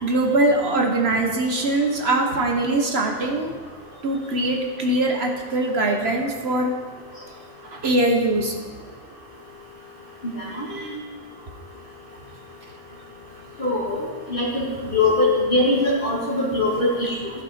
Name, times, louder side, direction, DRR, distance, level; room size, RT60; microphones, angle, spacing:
voice 1, 0.0-3.6 4.0-6.7 7.7-8.5 10.5-11.2, right 2 dB, 55° right, 2 dB, 1.2 m, -22 dB
voice 2, 13.6-14.6 14.9-17.3, left 2 dB, 40° left, -5 dB, 2.5 m, -22 dB
14.5 x 5.6 x 4.4 m, 1.5 s
omnidirectional pair, 1.3 m